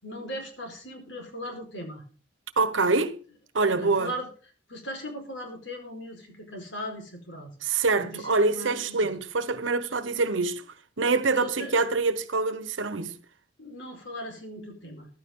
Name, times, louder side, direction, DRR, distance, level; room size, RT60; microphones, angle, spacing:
voice 1, 0.0-2.0 3.6-4.3 4.7-7.5 8.1-9.1 11.3-11.7 13.6-15.1, equal, 70° left, 4.8 m, -38 dB
voice 2, 2.6-3.2 3.5-4.1 7.6-10.6 11.0-13.2, right 3 dB, 85° right, 1.2 m, -25 dB
14.5 x 12.0 x 3.8 m
head